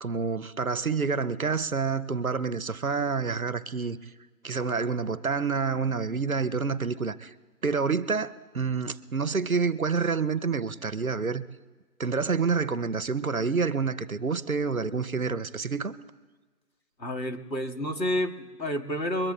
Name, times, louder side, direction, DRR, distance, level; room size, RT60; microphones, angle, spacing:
voice 1, 0.0-4.0 4.4-7.3 7.6-11.4 12.0-15.9, right 5 dB, 60° right, 0.7 m, -28 dB
voice 2, 17.0-19.3, equal, 90° left, 1.9 m, -30 dB
22.5 x 21.5 x 2.2 m
figure-of-eight pair, 175°, 49 cm